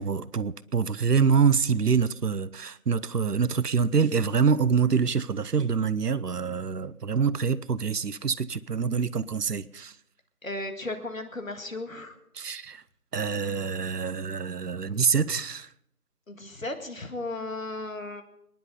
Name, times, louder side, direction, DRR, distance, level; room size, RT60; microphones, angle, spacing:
voice 1, 0.0-9.9 12.3-12.8 13.1-15.7, right 6 dB, 90° right, 0.8 m, -25 dB
voice 2, 10.4-12.1 16.3-18.2, left 2 dB, 60° left, 2.1 m, -35 dB
26.0 x 10.5 x 3.9 m
figure-of-eight pair, 175°, 46 cm